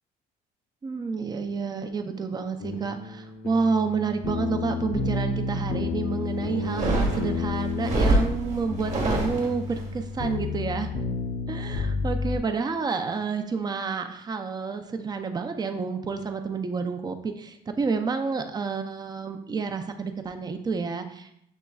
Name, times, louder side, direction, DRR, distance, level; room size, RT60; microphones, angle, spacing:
voice 1, 0.8-10.9 11.5-21.4, right 4 dB, 25° right, 6 dB, 0.5 m, -29 dB
sound 1, 2.6-12.4, left 4 dB, 55° left, 0.8 m, -31 dB
sound 2, 6.6-9.8, right 1 dB, 45° right, 1.2 m, -25 dB
7.2 x 3.1 x 2.3 m, 0.77 s
cardioid pair, 110°, 17 cm